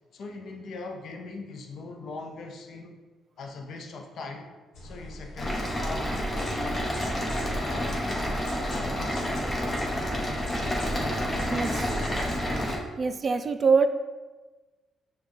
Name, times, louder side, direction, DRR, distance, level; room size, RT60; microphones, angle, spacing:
voice 1, 0.1-3.0 3.4-4.5 4.8-8.3 8.7-9.5, left 3 dB, 65° left, 3 dB, 0.6 m, -40 dB
sound 1, 4.7-12.5, left 1 dB, 85° left, 1.1 m, -43 dB
sound 2, 5.4-12.8, equal, 25° left, 0.9 m, -29 dB
voice 2, 11.5-12.0 13.0-13.9, right 5 dB, 40° right, 9 dB, 0.3 m, -24 dB
6.3 x 2.3 x 3.1 m, 1.3 s
cardioid pair, 90°, 0 cm